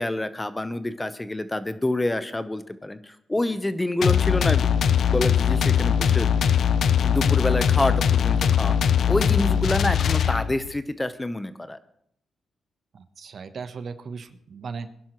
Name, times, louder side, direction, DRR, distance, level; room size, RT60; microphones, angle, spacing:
voice 1, 0.0-4.7 5.1-6.3 7.0-8.7 9.1-11.8, left 1 dB, 15° left, 12 dB, 0.9 m, -27 dB
sound 1, 4.0-10.7, left 8 dB, 70° left, 0.6 m, -21 dB
voice 2, 12.9-14.9, right 5 dB, 60° right, 10 dB, 1.0 m, -37 dB
21.0 x 11.0 x 3.1 m, 0.72 s
cardioid pair, 65°, 0 cm